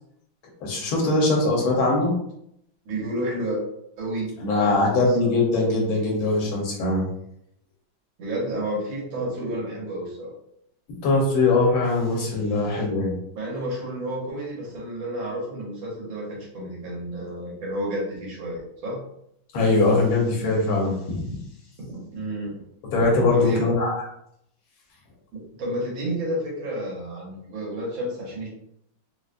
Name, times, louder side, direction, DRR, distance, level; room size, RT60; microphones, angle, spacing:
voice 1, 0.6-2.2 4.4-7.1 11.0-13.2 19.5-21.0 22.9-24.0, left 2 dB, 90° left, -1 dB, 1.8 m, -21 dB
voice 2, 2.9-3.6 4.0-5.3 8.2-10.3 13.3-19.0 22.1-22.6 23.3-23.6 25.6-28.5, right 1 dB, 75° right, -3 dB, 1.9 m, -31 dB
4.8 x 2.2 x 2.5 m, 0.74 s
omnidirectional pair, 2.2 m